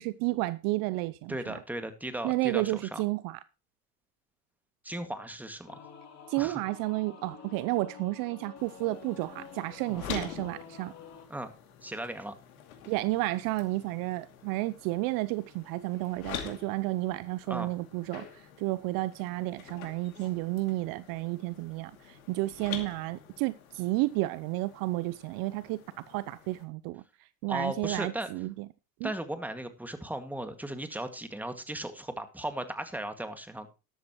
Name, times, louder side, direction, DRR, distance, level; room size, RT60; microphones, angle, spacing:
voice 1, 0.0-1.6 2.2-3.4 6.3-10.9 12.9-25.8 26.1-28.7 29.0-29.1, right 19 dB, 55° right, 0.7 m, -32 dB
voice 2, 1.3-3.0 4.8-5.9 6.4-6.6 9.9-10.1 11.3-11.5 11.8-12.3 17.5-17.7 27.5-28.3 29.0-33.7, right 1 dB, 5° right, 2.0 m, -36 dB
Singing / Musical instrument, 5.7-11.3, left 6 dB, 40° left, 2.9 m, -49 dB
sound 1, 8.6-26.6, left 8 dB, 80° left, 2.7 m, -46 dB
14.0 x 11.5 x 3.1 m
hypercardioid pair, 85°, 42 cm